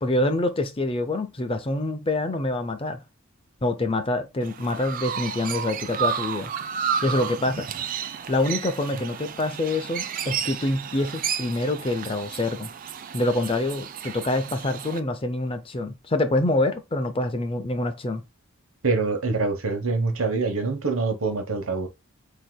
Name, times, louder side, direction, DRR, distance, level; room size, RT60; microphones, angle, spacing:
voice 1, 0.0-3.0 3.6-6.5 7.0-7.7 8.3-12.7 13.1-18.2, left 2 dB, 25° left, 0.5 m, -26 dB
Chirp tweet, 4.4-15.0, right 7 dB, 40° right, 0.4 m, -32 dB
voice 2, 18.8-21.9, right 4 dB, 75° right, 1.0 m, -25 dB
7.6 x 2.8 x 2.2 m
head